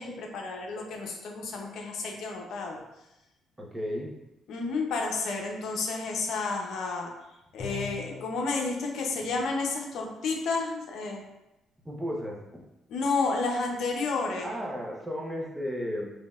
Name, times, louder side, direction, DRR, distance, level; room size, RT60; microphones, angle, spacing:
voice 1, 0.0-2.8 4.5-7.1 7.5-11.2 12.9-14.5, left 3 dB, 75° left, 1 dB, 0.7 m, -31 dB
voice 2, 3.6-4.1 11.8-12.6 14.4-16.1, equal, 15° right, -2 dB, 1.0 m, -34 dB
Bowed string instrument, 7.6-8.5, left 4 dB, 50° left, 1.0 m, -39 dB
5.1 x 2.8 x 2.4 m, 0.93 s
cardioid pair, 80°, 0 cm